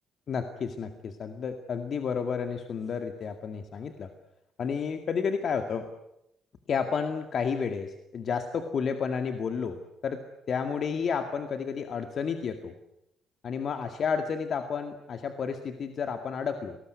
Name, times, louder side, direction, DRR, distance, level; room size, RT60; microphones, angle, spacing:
voice 1, 0.3-4.1 4.6-5.9 6.7-10.2 10.5-12.7 13.4-16.8, left 6 dB, 55° left, 7 dB, 2.2 m, -31 dB
27.5 x 20.0 x 9.5 m, 0.84 s
cardioid pair, 90°, 0 cm